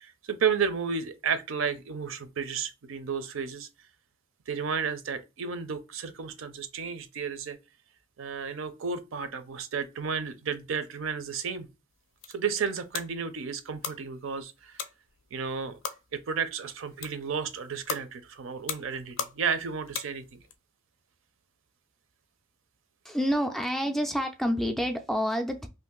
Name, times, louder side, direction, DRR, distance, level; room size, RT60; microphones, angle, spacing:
voice 1, 0.0-3.7 4.5-7.6 8.2-11.7 12.3-14.8 15.3-15.8 16.1-20.4, right 6 dB, 70° right, 0.5 m, -32 dB
sound 1, 11.9-20.6, left 7 dB, 70° left, 0.5 m, -41 dB
voice 2, 23.0-25.7, equal, ahead, 0.3 m, -28 dB
2.6 x 2.5 x 3.7 m
head